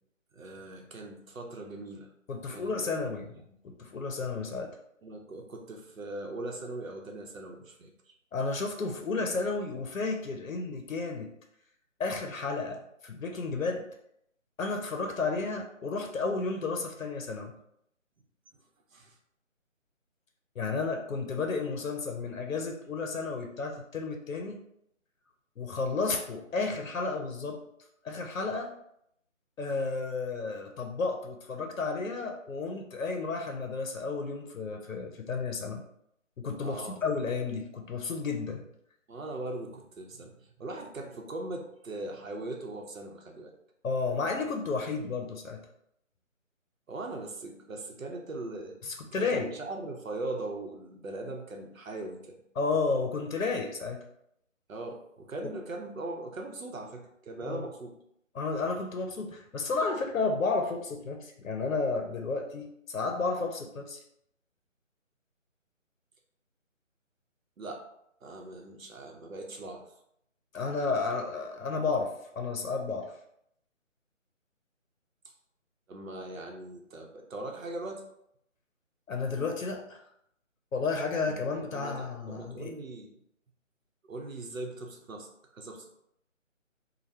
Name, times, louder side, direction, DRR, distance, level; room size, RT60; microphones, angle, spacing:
voice 1, 0.3-2.1 2.5-2.7 3.0-3.2 3.5-3.6 5.0-7.9 18.9-19.2 36.6-37.0 39.1-43.5 46.9-48.8 49.2-52.4 54.7-57.9 67.6-67.8 68.2-69.8 75.9-78.0 81.3-81.4 81.7-83.1 84.1-86.0, right 2 dB, 85° right, 2 dB, 0.8 m, -40 dB
voice 2, 2.3-3.3 3.6-4.8 8.3-11.3 12.0-13.8 14.6-17.5 20.6-24.6 25.6-27.6 28.0-28.7 29.6-35.8 36.4-38.6 43.8-45.6 48.8-49.5 52.6-54.0 57.4-57.6 58.3-64.0 70.5-73.1 79.1-80.0 80.7-82.7, left 4 dB, 85° left, 3 dB, 0.6 m, -32 dB
3.2 x 2.2 x 2.7 m, 0.74 s
figure-of-eight pair, 160°, 39 cm